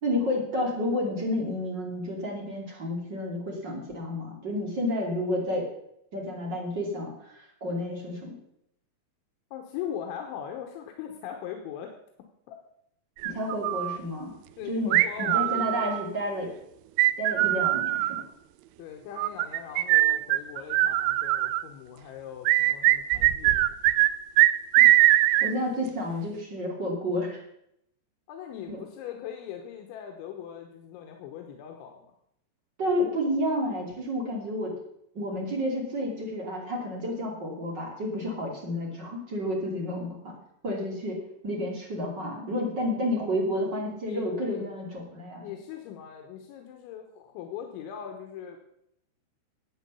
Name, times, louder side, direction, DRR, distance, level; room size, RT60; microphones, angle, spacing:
voice 1, 0.0-5.7 6.1-8.3 13.2-14.3 14.7-16.5 17.2-18.2 24.8-24.9 25.4-27.4 28.7-28.8 32.8-34.7 35.1-40.3 40.6-45.5, left 1 dB, 30° right, -1 dB, 2.4 m, -30 dB
voice 2, 9.5-11.9 12.5-12.6 14.6-16.0 18.8-23.6 28.3-32.1 44.0-44.7 45.4-48.6, left 9 dB, 90° left, 4 dB, 3.5 m, -40 dB
sound 1, 13.2-14.0 14.9-16.1 17.0-18.2 19.2-21.6 22.5-24.1 24.4-25.5, right 16 dB, 85° right, 3.0 m, -22 dB
12.0 x 8.4 x 7.0 m, 0.77 s
omnidirectional pair, 5.3 m